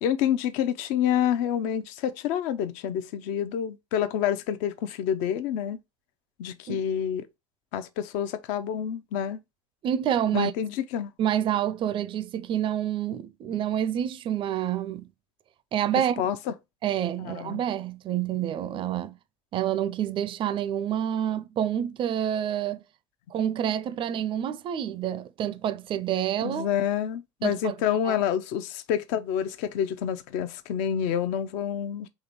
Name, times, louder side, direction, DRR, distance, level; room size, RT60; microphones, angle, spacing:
voice 1, 0.0-5.8 6.4-7.3 7.7-9.4 10.3-11.1 16.2-16.5 17.2-17.6 26.4-32.1, left 9 dB, 60° left, 0.6 m, -28 dB
voice 2, 9.8-10.5 11.2-15.1 15.7-16.2 16.8-19.1 19.5-22.8 23.3-26.7 27.4-27.7 28.0-28.2, right 10 dB, 35° right, 0.4 m, -28 dB
3.8 x 3.2 x 4.3 m
hypercardioid pair, 75°, 15 cm